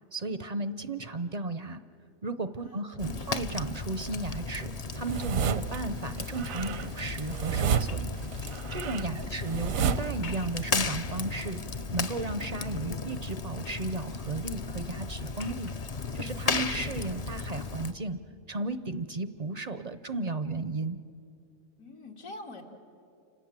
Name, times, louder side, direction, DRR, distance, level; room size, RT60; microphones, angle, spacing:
voice 1, 0.1-1.8 2.2-8.1 8.7-11.6 11.9-15.7 16.1-18.2 18.5-21.0, right 2 dB, 40° right, 12 dB, 0.6 m, -34 dB
voice 2, 2.6-3.3 8.9-9.3 21.8-22.6, left 2 dB, 75° left, 0 dB, 2.8 m, -46 dB
Fire, 3.0-17.9, left 4 dB, 40° left, 0.6 m, -35 dB
sound 1, 4.9-5.8 6.2-10.6 10.9-11.8, right 7 dB, 80° right, 1.2 m, -31 dB
sound 2, 7.4-9.1 10.0-10.8 11.3-11.9 12.4-12.9 13.2-13.9 15.4-15.9 17.7-17.8, left 3 dB, 55° left, 1.4 m, -50 dB
29.5 x 26.0 x 7.4 m, 2.6 s
omnidirectional pair, 1.4 m